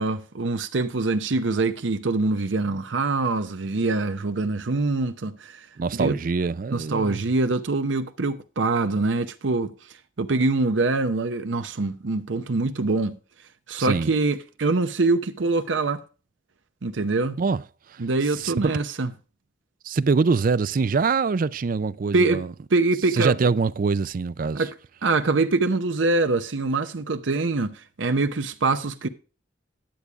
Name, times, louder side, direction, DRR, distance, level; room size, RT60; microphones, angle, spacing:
voice 1, 0.0-5.7 5.9-6.2 6.7-13.2 13.7-16.0 16.8-17.4 18.0-19.1 22.1-22.4 22.7-23.5 24.5-24.7 25.0-29.1, right 3 dB, 80° right, 0.8 m, -24 dB
voice 2, 5.8-7.2 13.8-14.1 17.4-17.6 18.4-18.7 19.8-22.5 23.2-24.6, right 4 dB, 45° right, 0.4 m, -24 dB
10.5 x 8.4 x 3.5 m
head